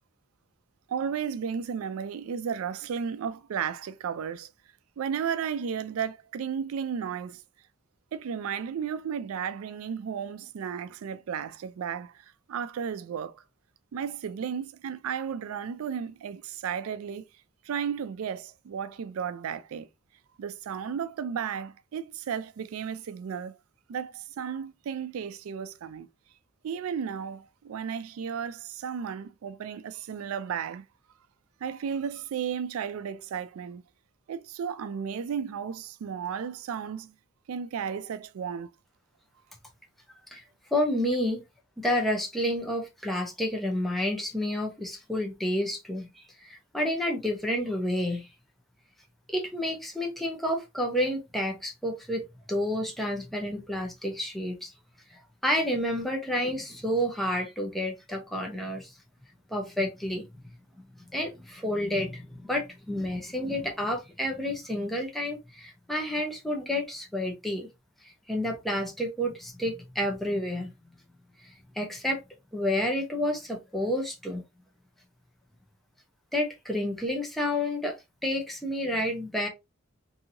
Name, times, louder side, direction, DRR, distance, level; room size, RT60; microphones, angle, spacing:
voice 1, 0.9-4.5 5.0-7.4 8.1-12.1 12.5-13.4 13.9-17.2 17.6-19.9 20.4-23.6 23.9-26.1 26.6-30.9 31.6-33.8 34.3-37.1 37.5-38.7, right 7 dB, 90° right, 0.3 m, -34 dB
voice 2, 40.7-41.4 41.8-48.3 49.3-54.7 55.1-58.9 59.5-60.2 61.1-67.7 68.3-70.7 71.4-72.2 72.5-74.4 76.3-79.5, left 1 dB, ahead, 0.6 m, -30 dB
2.8 x 2.7 x 2.6 m
head